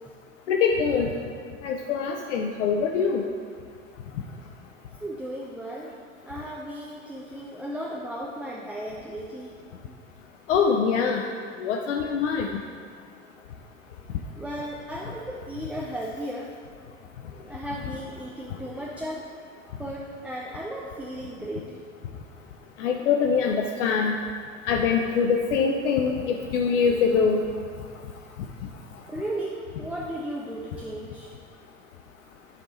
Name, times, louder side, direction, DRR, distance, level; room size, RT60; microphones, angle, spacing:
voice 1, 0.5-1.1 1.6-3.2 10.5-11.2 11.6-12.5 22.8-24.1 24.7-27.4, left 6 dB, 70° left, 2 dB, 0.5 m, -23 dB
voice 2, 5.0-5.9 6.3-9.5 14.4-16.5 17.4-19.3 19.8-21.7 29.1-31.3, right 1 dB, 5° right, -4 dB, 0.3 m, -35 dB
9.7 x 3.5 x 4.1 m, 2.1 s
figure-of-eight pair, 70°, 38 cm